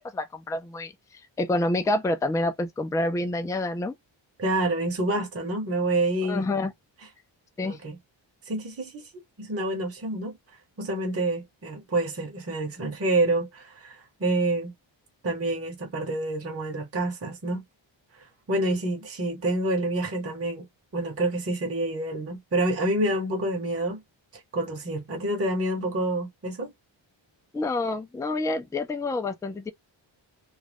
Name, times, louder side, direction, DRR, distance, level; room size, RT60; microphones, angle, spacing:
voice 1, 0.1-0.9 1.4-3.9 6.3-6.7 7.6-7.8 27.5-29.7, left 2 dB, 10° left, 0.3 m, -27 dB
voice 2, 4.4-6.5 7.6-8.0 8.5-9.0 9.4-10.4 10.8-14.7 15.2-17.6 18.2-20.7 20.9-24.0 24.5-26.7, right 2 dB, 30° right, 0.9 m, -28 dB
2.5 x 2.2 x 3.3 m
wide cardioid pair, 125°, 47 cm